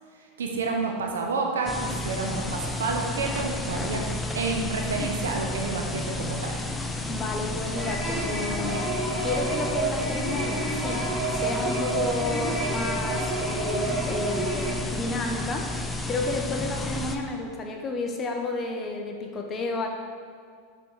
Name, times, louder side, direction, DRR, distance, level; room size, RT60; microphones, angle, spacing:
voice 1, 0.4-4.0 4.3-6.6, right 3 dB, 90° right, 1 dB, 0.9 m, -29 dB
sound 1, 1.7-17.2, left 2 dB, 10° left, 0.6 m, -32 dB
voice 2, 7.1-11.0 11.3-15.7 16.1-19.9, left 3 dB, 30° left, 2 dB, 1.0 m, -31 dB
sound 2, 7.7-14.7, right 2 dB, 20° right, 1.7 m, -30 dB
6.0 x 4.8 x 5.5 m, 2.1 s
hypercardioid pair, 110°, 0 cm